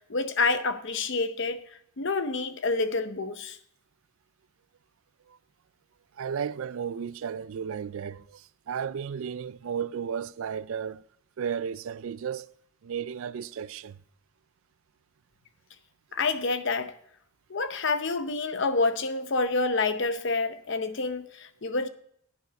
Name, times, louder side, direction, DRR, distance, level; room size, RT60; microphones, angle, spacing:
voice 1, 0.1-1.6 2.0-3.6 16.1-16.9 17.5-21.9, left 3 dB, 55° left, 0.7 m, -28 dB
voice 2, 6.2-11.0 11.4-12.5 12.8-14.0, right 7 dB, 65° right, 0.3 m, -34 dB
10.5 x 9.5 x 4.1 m
head